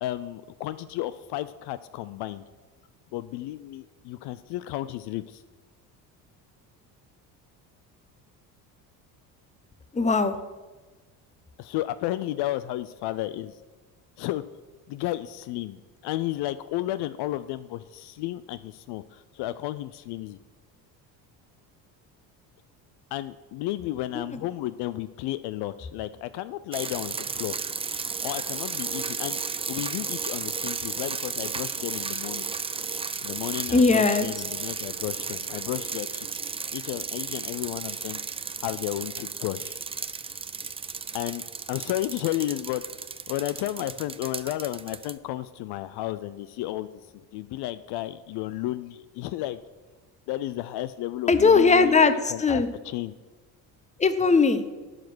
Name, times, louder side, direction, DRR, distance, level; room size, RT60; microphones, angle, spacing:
voice 1, 0.0-2.4 3.1-5.4 11.6-13.6 14.2-14.4 14.9-20.4 23.1-27.6 28.2-29.4 29.7-32.5 33.2-36.4 36.7-38.2 38.6-39.8 41.1-41.4 41.7-46.9 47.1-49.6 50.3-53.1, left 15 dB, 65° left, 14 dB, 0.5 m, -33 dB
voice 2, 9.9-10.3 33.7-34.3 51.3-52.7 54.0-54.6, left 4 dB, 15° left, 10 dB, 0.8 m, -19 dB
sound 1, 26.7-45.1, right 5 dB, 15° right, 0.4 m, -34 dB
12.0 x 4.9 x 6.1 m, 1.3 s
supercardioid pair, 70°, 45 cm